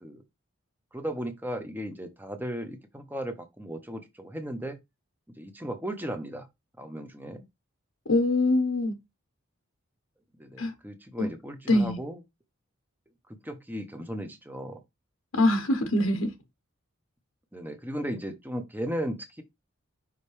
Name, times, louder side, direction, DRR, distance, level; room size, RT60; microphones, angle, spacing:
voice 1, 0.9-4.8 5.4-6.5 6.8-7.4 10.4-12.2 13.3-14.8 17.5-19.4, equal, 10° right, 1.0 m, -36 dB
voice 2, 8.1-8.9 10.6-10.7 11.2-11.3 11.7-12.0 15.3-16.3, left 2 dB, 80° left, 1.1 m, -23 dB
5.6 x 5.1 x 3.4 m
head